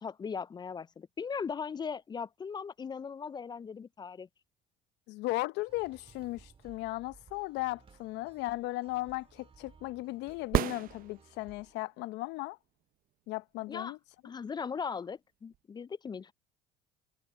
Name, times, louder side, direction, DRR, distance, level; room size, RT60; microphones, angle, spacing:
voice 1, 0.0-4.3 13.7-14.0 14.2-16.3, left 6 dB, 25° left, 0.4 m, -38 dB
voice 2, 5.1-12.6 13.3-14.0, left 19 dB, 70° left, 0.8 m, -36 dB
sound 1, 5.7-11.7, right 5 dB, 30° right, 2.6 m, -60 dB
sound 2, 10.4-11.7 15.5-15.6, right 13 dB, 50° right, 0.6 m, -31 dB
supercardioid pair, 75°, 19 cm